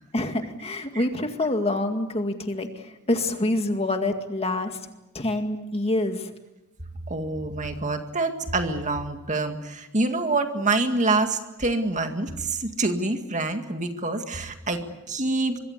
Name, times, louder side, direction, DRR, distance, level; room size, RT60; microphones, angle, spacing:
voice 1, 0.1-4.8 5.1-6.3, left 1 dB, 30° left, 6 dB, 2.1 m, -26 dB
voice 2, 7.1-15.6, right 3 dB, 35° right, 6 dB, 2.0 m, -26 dB
25.5 x 22.5 x 8.2 m, 0.99 s
head